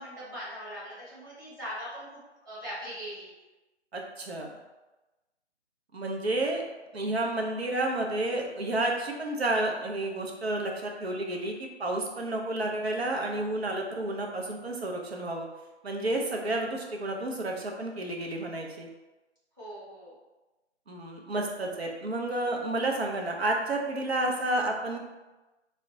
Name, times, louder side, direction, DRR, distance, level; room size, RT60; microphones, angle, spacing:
voice 1, 0.0-2.2 2.4-3.3 19.6-20.1, equal, 20° right, -10 dB, 0.6 m, -40 dB
voice 2, 3.9-4.5 5.9-6.6 6.9-15.5 15.8-18.9 20.9-25.0, right 2 dB, 65° right, 1 dB, 0.6 m, -30 dB
2.3 x 2.1 x 3.8 m, 1.1 s
figure-of-eight pair, 150°, 34 cm